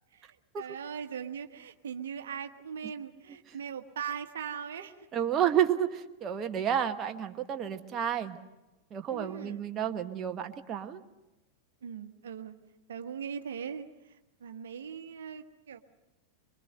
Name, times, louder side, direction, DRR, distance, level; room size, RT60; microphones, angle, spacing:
voice 1, 0.1-5.1 9.1-9.7 11.8-12.6 12.9-15.8, right 7 dB, 65° right, 8 dB, 1.2 m, -40 dB
voice 2, 5.1-8.4 8.9-11.0, right 9 dB, 30° right, 6 dB, 1.1 m, -30 dB
24.5 x 24.5 x 6.6 m, 1.0 s
figure-of-eight pair, 90°, 0 cm